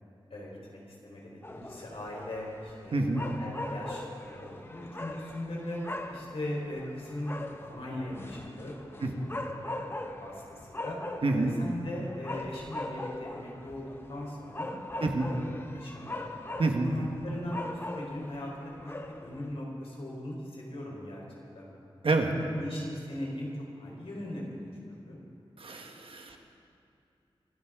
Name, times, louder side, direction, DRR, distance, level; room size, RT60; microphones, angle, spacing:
voice 1, 0.3-3.0 3.4-5.8 6.1-9.5 9.8-9.9 10.2-11.0 11.3-14.8 15.2-16.2 16.8-18.9 19.2-21.2 21.5-21.7 22.6-24.6 24.9-25.2, left 1 dB, 85° left, -3 dB, 4.1 m, -39 dB
sound 1, 1.4-19.5, left 1 dB, 25° left, 0.9 m, -41 dB
voice 2, 2.9-3.2 9.0-9.1 11.2-11.5 15.0-15.3 16.6-16.9 22.0-22.3 25.6-26.4, right 3 dB, 70° right, 3 dB, 1.5 m, -27 dB
25.0 x 13.0 x 3.8 m, 2.7 s
wide cardioid pair, 85°, 10 cm